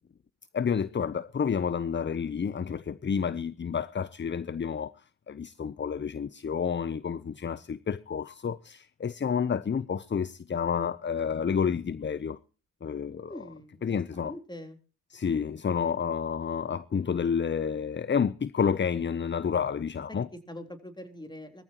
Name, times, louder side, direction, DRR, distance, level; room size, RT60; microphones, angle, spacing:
voice 1, 0.5-4.9 5.3-12.4 12.8-13.3 13.8-14.3 15.1-20.3, left 7 dB, 30° left, 0.7 m, -30 dB
voice 2, 13.2-14.8 20.3-21.6, left 1 dB, 10° left, 3.6 m, -44 dB
21.0 x 14.5 x 3.0 m
supercardioid pair, 45°, 40 cm